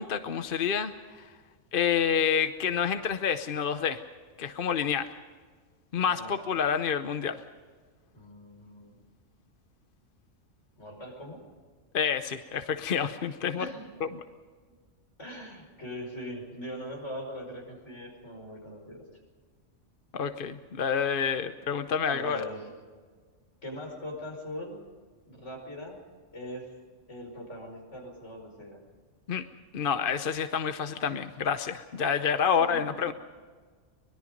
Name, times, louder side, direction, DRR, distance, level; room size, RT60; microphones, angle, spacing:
voice 1, 0.0-1.3 1.7-4.0 4.4-5.1 5.9-7.4 11.9-13.7 14.0-14.1 20.1-22.4 29.3-29.4 29.7-33.1, left 7 dB, 50° left, 9 dB, 0.9 m, -28 dB
voice 2, 6.0-6.4 8.1-9.0 10.8-11.4 13.6-13.9 15.2-19.1 22.0-22.7 23.6-24.8 25.2-26.0 26.3-26.7 27.1-28.8 32.5-32.8, equal, 75° left, 1 dB, 5.8 m, -41 dB
24.5 x 21.0 x 5.2 m, 1.5 s
omnidirectional pair, 1.2 m